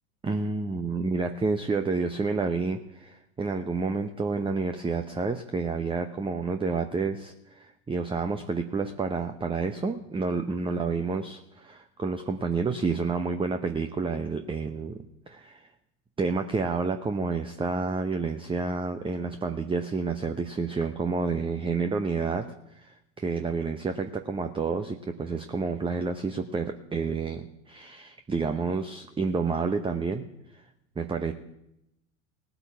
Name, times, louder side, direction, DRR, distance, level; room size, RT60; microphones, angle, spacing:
voice 1, 0.2-15.7 16.2-30.2 30.5-30.6 31.0-31.3, right 4 dB, 15° right, 8 dB, 0.8 m, -29 dB
19.0 x 8.0 x 4.6 m, 0.83 s
hypercardioid pair, 80°, 41 cm